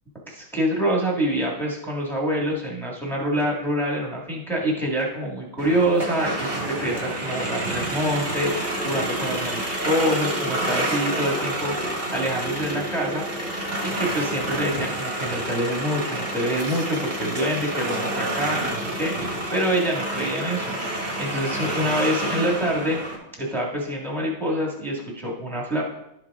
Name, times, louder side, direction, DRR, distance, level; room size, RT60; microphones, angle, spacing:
voice 1, 0.3-13.2 13.8-23.0 23.4-25.8, equal, ahead, -3 dB, 1.3 m, -26 dB
sound 1, 5.6-23.2, right 1 dB, 25° right, 1.2 m, -29 dB
12.0 x 4.9 x 3.6 m, 0.83 s
omnidirectional pair, 2.3 m